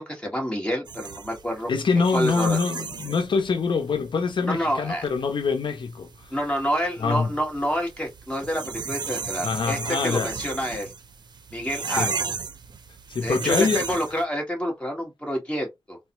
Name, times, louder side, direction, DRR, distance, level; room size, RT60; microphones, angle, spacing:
voice 1, 0.0-2.6 4.5-5.0 6.3-10.9 11.5-12.2 13.2-16.0, equal, 10° left, 1.4 m, -28 dB
sound 1, 0.9-14.2, right 5 dB, 55° right, 0.5 m, -35 dB
voice 2, 1.7-6.1 7.0-7.3 9.4-10.3 11.9-12.1 13.1-14.0, left 5 dB, 70° left, 0.5 m, -25 dB
3.8 x 2.1 x 2.9 m
wide cardioid pair, 80°, 9 cm